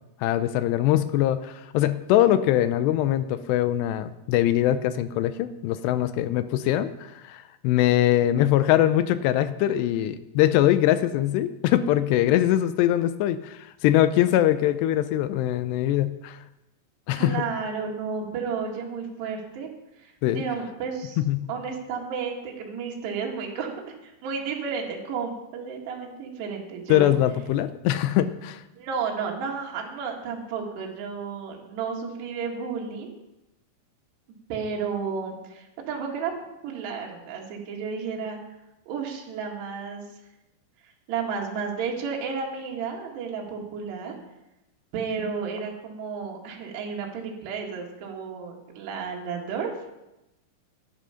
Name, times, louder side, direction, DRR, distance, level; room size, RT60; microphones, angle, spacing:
voice 1, 0.2-16.4 17.1-17.4 20.2-20.4 21.2-21.4 26.9-28.6, left 13 dB, 80° left, 13 dB, 2.7 m, -22 dB
voice 2, 17.2-19.7 20.0-21.2 21.5-27.2 28.8-33.1 34.5-36.3 36.6-38.4 38.9-40.0 41.1-44.2 44.9-49.9, right 5 dB, 75° right, -1 dB, 3.8 m, -32 dB
11.5 x 11.0 x 5.7 m, 0.94 s
omnidirectional pair, 5.0 m